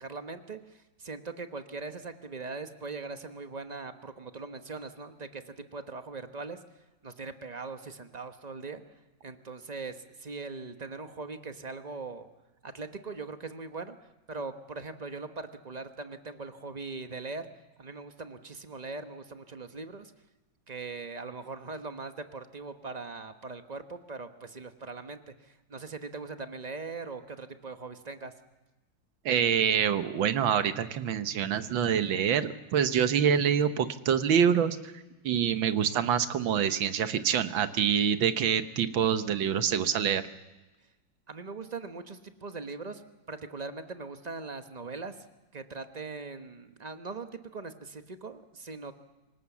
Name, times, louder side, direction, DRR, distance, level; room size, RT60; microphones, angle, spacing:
voice 1, 0.0-6.6 7.0-8.8 9.2-12.3 12.6-14.0 14.3-17.5 17.8-20.1 20.7-28.3 41.3-43.0 43.3-45.2 45.5-48.9, right 4 dB, 30° right, 8 dB, 0.9 m, -40 dB
voice 2, 29.3-34.9 35.2-40.2, right 8 dB, 80° right, 11 dB, 1.8 m, -26 dB
26.0 x 18.5 x 7.3 m, 1.1 s
omnidirectional pair, 2.1 m